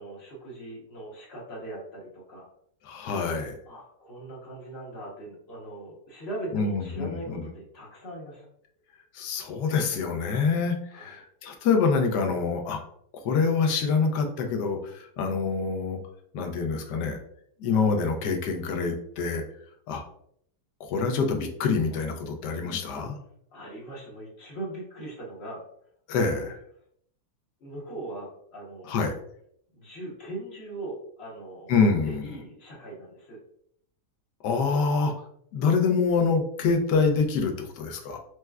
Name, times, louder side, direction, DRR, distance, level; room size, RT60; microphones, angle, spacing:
voice 1, 0.0-2.5 3.7-8.5 10.9-11.1 23.5-25.6 26.2-26.5 27.6-28.9 29.7-31.7 32.0-33.4, right 2 dB, 45° left, -3 dB, 0.9 m, -40 dB
voice 2, 2.8-3.6 6.5-7.4 9.1-12.8 13.2-16.0 16.3-17.2 17.6-19.4 19.9-20.0 20.9-23.2 26.1-26.6 28.9-29.2 31.7-32.3 34.4-35.1 35.5-38.2, left 4 dB, 85° left, 3 dB, 1.2 m, -26 dB
4.6 x 2.1 x 2.2 m, 0.68 s
omnidirectional pair, 1.8 m